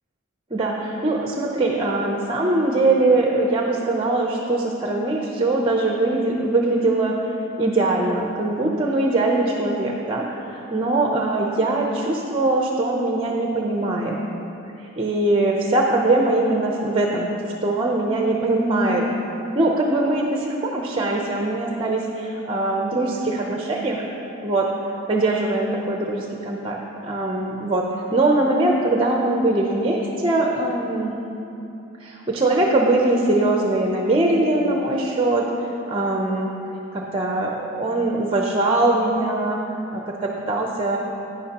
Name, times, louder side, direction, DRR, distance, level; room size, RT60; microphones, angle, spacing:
voice 1, 0.5-7.2 7.6-14.2 15.0-17.3 17.6-19.1 19.6-24.1 24.4-24.7 25.1-31.1 32.0-35.4 35.9-36.5 36.9-39.6 39.9-41.0, right 2 dB, 25° right, 0 dB, 0.6 m, -22 dB
11.0 x 9.6 x 2.9 m, 2.8 s
head